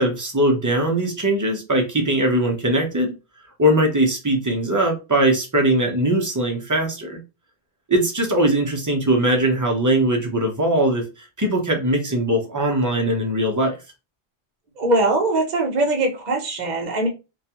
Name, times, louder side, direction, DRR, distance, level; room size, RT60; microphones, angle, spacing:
voice 1, 0.0-3.1 3.6-7.2 7.9-11.0 11.4-13.7, right 1 dB, 30° right, 2 dB, 0.4 m, -20 dB
voice 2, 14.8-17.1, right 2 dB, 45° right, 1 dB, 0.8 m, -21 dB
2.3 x 2.2 x 2.8 m, 0.28 s
omnidirectional pair, 1.2 m